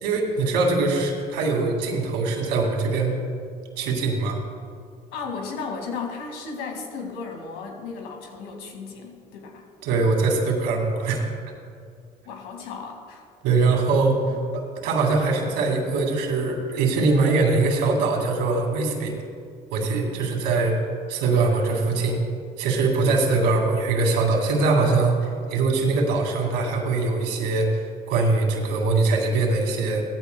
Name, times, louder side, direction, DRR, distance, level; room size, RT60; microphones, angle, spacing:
voice 1, 0.0-3.2 3.8-4.4 9.8-11.3 13.4-19.1 19.7-20.8 21.1-22.2 22.6-25.2 25.5-30.0, right 3 dB, 85° right, 2 dB, 2.4 m, -22 dB
voice 2, 5.1-9.6 12.2-13.2 14.3-14.4, left 5 dB, 90° left, 2 dB, 2.3 m, -35 dB
17.5 x 14.5 x 2.3 m, 2.2 s
supercardioid pair, 90°, 17 cm